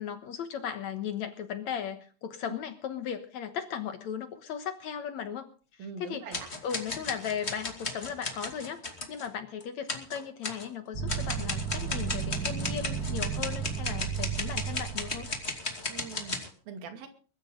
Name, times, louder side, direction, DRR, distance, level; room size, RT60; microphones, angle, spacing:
voice 1, 0.0-6.3 6.6-8.8 9.1-15.3, left 8 dB, 65° left, 9 dB, 1.8 m, -37 dB
voice 2, 5.8-6.5 15.9-17.1, right 5 dB, 65° right, 7 dB, 4.2 m, -43 dB
sound 1, 6.3-9.3 9.6-9.7 9.9-10.7 11.1-16.5, left 3 dB, 20° left, 1.8 m, -35 dB
sound 2, 10.9-15.5, right 7 dB, 30° right, 2.0 m, -34 dB
22.0 x 13.0 x 3.8 m, 0.39 s
omnidirectional pair, 4.7 m